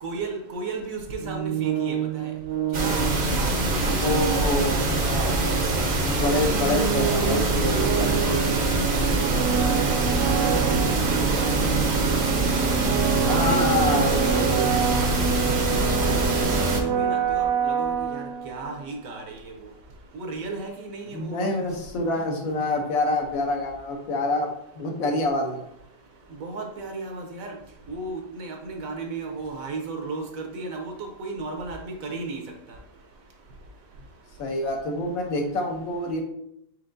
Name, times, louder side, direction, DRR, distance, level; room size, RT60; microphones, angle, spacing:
voice 1, 0.0-2.3 2.7-4.3 8.2-11.5 12.6-12.7 13.2-14.6 14.9-15.1 15.8-19.5 20.1-21.6 26.4-27.5 27.9-30.9 31.2-32.4, right 3 dB, 65° right, 2 dB, 1.0 m, -35 dB
sound 1, 1.2-18.9, right 9 dB, 90° right, 1.2 m, -27 dB
sound 2, 2.7-16.8, right 2 dB, 45° right, 0.7 m, -24 dB
voice 2, 4.0-5.3 6.1-8.3 13.3-14.6 21.1-24.5 24.8-25.6 34.4-36.2, left 2 dB, 65° left, 1 dB, 1.1 m, -27 dB
4.5 x 4.4 x 2.5 m, 0.77 s
omnidirectional pair, 1.7 m